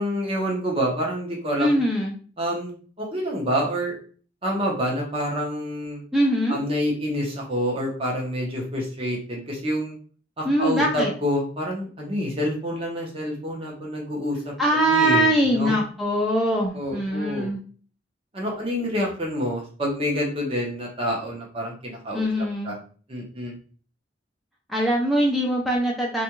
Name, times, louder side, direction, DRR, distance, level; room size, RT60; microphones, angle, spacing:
voice 1, 0.0-1.8 2.4-4.0 4.4-6.0 6.5-10.0 10.4-14.5 14.8-15.8 16.7-17.5 18.3-22.3 22.6-22.7 23.1-23.5, equal, 30° right, -2 dB, 0.8 m, -27 dB
voice 2, 1.6-2.1 6.1-6.6 10.4-11.1 14.6-17.6 22.1-22.7 24.7-26.2, right 1 dB, ahead, -2 dB, 0.4 m, -22 dB
2.4 x 2.2 x 2.9 m, 0.42 s
head